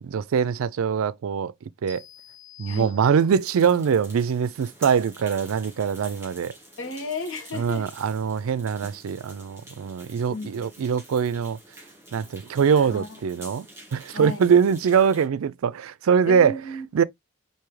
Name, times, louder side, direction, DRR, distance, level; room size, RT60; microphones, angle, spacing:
voice 1, 0.0-1.5 1.8-2.0 2.6-6.5 7.5-11.6 12.1-13.7 13.9-16.6 16.9-17.0, right 7 dB, 80° right, 0.4 m, -23 dB
sound 1, 1.9-3.6, left 9 dB, 15° left, 3.1 m, -48 dB
sound 2, 3.3-15.3, right 1 dB, 15° right, 2.3 m, -47 dB
voice 2, 6.8-7.9 10.3-10.7 12.7-13.1 14.1-14.5 16.3-16.9, left 2 dB, 65° left, 1.2 m, -34 dB
4.7 x 2.7 x 3.1 m
head